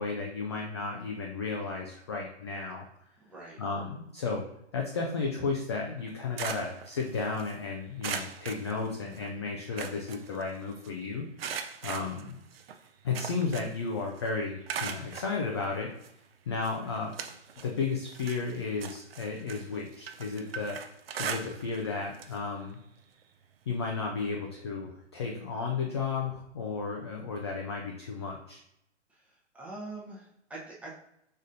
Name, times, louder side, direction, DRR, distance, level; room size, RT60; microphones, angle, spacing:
voice 1, 0.0-2.9 3.6-4.4 4.7-11.3 11.8-12.3 13.0-15.9 16.5-17.1 17.6-20.8 21.2-22.8 23.7-28.6, left 4 dB, 25° left, 0 dB, 0.3 m, -33 dB
voice 2, 3.2-3.6 29.1-31.0, right 2 dB, 5° right, -5 dB, 0.8 m, -44 dB
sound 1, 6.0-7.5 8.0-9.3 9.6-10.9 11.4-13.9 14.2-15.3 16.0-16.1 16.6-17.7 18.1-21.9 22.1-22.4 22.7-22.8 24.0-24.1, right 7 dB, 55° right, 0.6 m, -39 dB
4.9 x 4.2 x 2.5 m, 0.77 s
hypercardioid pair, 130°, 35 cm